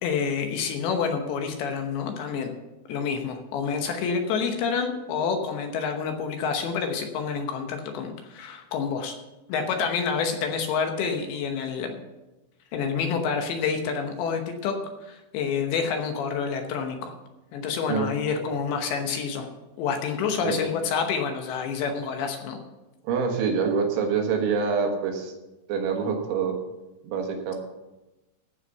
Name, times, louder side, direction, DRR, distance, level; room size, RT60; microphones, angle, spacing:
voice 1, 0.0-2.5 2.9-9.1 9.5-11.9 12.7-17.1 17.5-19.5 19.8-22.6, left 6 dB, 75° left, 4 dB, 3.0 m, -28 dB
voice 2, 23.0-25.3 25.7-26.6 27.0-27.5, right 5 dB, 75° right, 2 dB, 3.9 m, -26 dB
15.0 x 5.8 x 6.9 m, 1.0 s
omnidirectional pair, 5.7 m